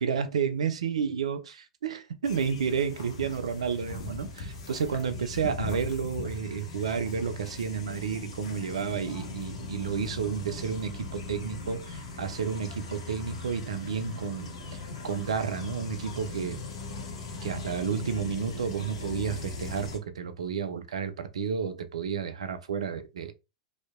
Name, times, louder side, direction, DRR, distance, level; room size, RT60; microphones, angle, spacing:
voice 1, 0.0-16.6 17.4-23.3, right 6 dB, 75° right, 0.3 m, -31 dB
sound 1, 2.2-20.0, left 3 dB, 70° left, 0.6 m, -39 dB
2.7 x 2.1 x 2.3 m
figure-of-eight pair, 95°, 3 cm